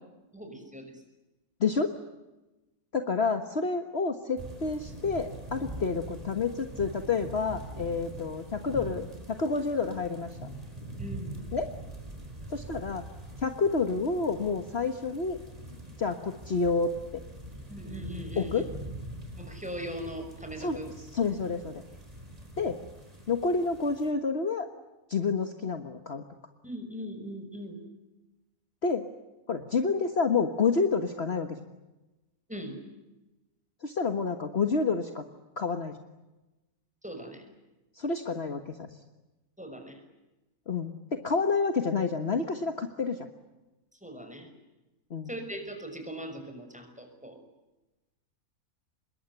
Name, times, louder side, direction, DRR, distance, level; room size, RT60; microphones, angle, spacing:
voice 1, 0.3-0.9 11.0-11.3 17.7-18.6 19.3-20.9 26.6-27.8 32.5-32.8 37.0-37.4 39.6-40.0 44.0-44.5 45.3-47.4, equal, 5° right, 5 dB, 5.8 m, -40 dB
voice 2, 1.6-1.9 2.9-10.3 11.5-11.7 12.5-13.0 13.4-15.4 16.0-17.2 18.3-18.7 20.6-21.8 22.6-22.8 23.3-24.7 25.1-26.2 28.8-29.0 29.5-31.6 33.8-35.2 35.6-35.9 38.0-38.9 40.7-43.3 45.1-45.3, left 4 dB, 45° left, 6 dB, 1.7 m, -29 dB
sound 1, 4.4-24.1, right 1 dB, 25° right, 4.2 m, -43 dB
26.0 x 22.0 x 9.5 m, 1.1 s
omnidirectional pair, 1.6 m